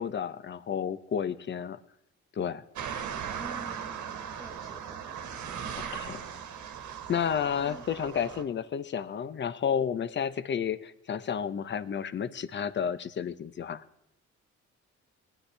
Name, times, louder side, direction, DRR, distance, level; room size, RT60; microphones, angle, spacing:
voice 1, 0.0-1.8 2.4-2.6 5.9-6.2 7.1-13.8, left 7 dB, 40° left, 15 dB, 0.6 m, -31 dB
sound 1, 2.8-8.4, right 8 dB, 75° right, 1.3 m, -38 dB
voice 2, 3.4-4.0 4.4-4.8 7.6-7.8, right 2 dB, 10° right, 1 dB, 0.9 m, -46 dB
18.5 x 9.9 x 3.3 m, 0.78 s
cardioid pair, 90°, 30 cm